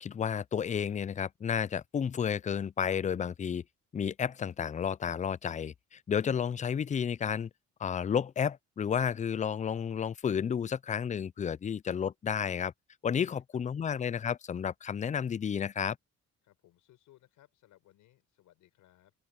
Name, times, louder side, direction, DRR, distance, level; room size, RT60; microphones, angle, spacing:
voice 1, 0.0-3.6 3.9-7.5 7.8-12.7 13.0-16.0, left 7 dB, 25° left, 0.4 m, -31 dB
voice 2, 16.4-19.1, left 14 dB, 90° left, 5.9 m, -63 dB
open air
cardioid pair, 90°, 30 cm